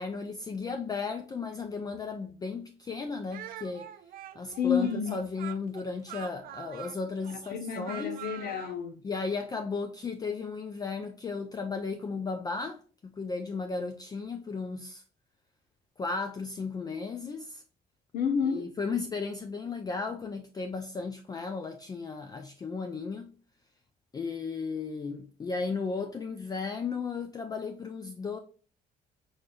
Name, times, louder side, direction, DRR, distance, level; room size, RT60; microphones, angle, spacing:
voice 1, 0.0-3.9 4.4-8.2 9.0-15.0 16.0-17.6 18.5-23.3 24.1-28.4, left 4 dB, 25° left, 0.4 m, -35 dB
Speech, 3.3-8.8, right 13 dB, 60° right, 0.4 m, -45 dB
voice 2, 4.6-5.2 7.3-9.0 18.1-18.7, left 7 dB, 65° left, 0.8 m, -30 dB
4.9 x 2.6 x 2.2 m
cardioid pair, 110°, 17 cm